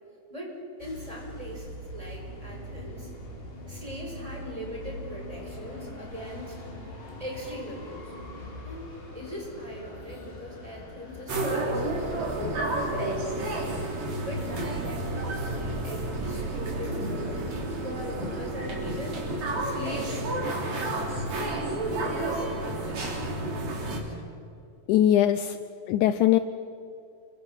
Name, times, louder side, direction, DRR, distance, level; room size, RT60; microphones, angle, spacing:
voice 1, 0.3-3.1 3.7-6.6 7.2-8.1 8.6-8.9 9.1-12.3 12.8-13.7 14.2-17.5 17.8-19.3 19.6-20.7 21.3-23.0, equal, 10° right, -1 dB, 5.3 m, -39 dB
sound 1, 0.8-19.7, left 1 dB, 70° left, 6.2 m, -43 dB
sound 2, 11.3-24.0, right 2 dB, 50° right, 4.8 m, -31 dB
voice 2, 24.9-25.6 25.9-26.4, left 12 dB, 85° left, 11 dB, 1.7 m, -21 dB
29.5 x 24.0 x 5.7 m, 2.5 s
omnidirectional pair, 4.3 m